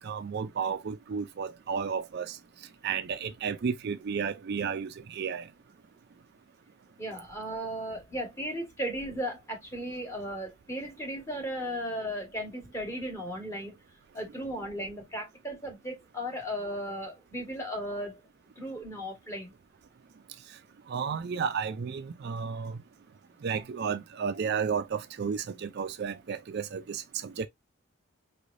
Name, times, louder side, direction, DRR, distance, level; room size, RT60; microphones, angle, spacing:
voice 1, 0.0-2.4 2.8-5.5 20.9-22.8 23.4-27.5, right 6 dB, 50° right, 0.4 m, -32 dB
voice 2, 7.0-13.7 14.1-18.2 18.6-19.5, equal, 15° left, 1.5 m, -36 dB
4.6 x 3.2 x 2.5 m
head